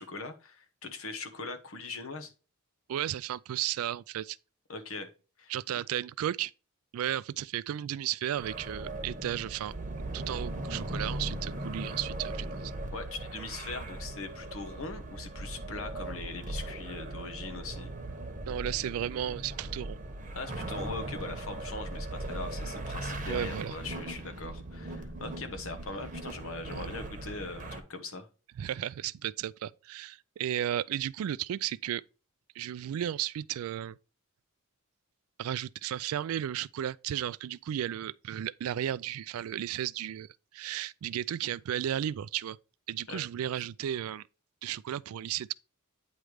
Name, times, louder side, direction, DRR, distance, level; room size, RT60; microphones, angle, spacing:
voice 1, 0.0-2.3 4.7-5.1 5.4-5.5 12.9-17.9 20.3-28.3 43.1-43.2, left 3 dB, 70° left, 1.1 m, -41 dB
voice 2, 2.9-4.4 5.5-6.5 6.9-9.7 10.1-12.7 18.5-20.0 23.3-23.8 26.7-26.9 28.6-32.0 32.6-34.0 35.4-42.6 42.9-44.2 44.6-45.5, right 11 dB, 75° right, 0.3 m, -34 dB
sound 1, 8.4-27.8, right 1 dB, 35° right, 1.0 m, -39 dB
9.0 x 3.2 x 4.9 m
head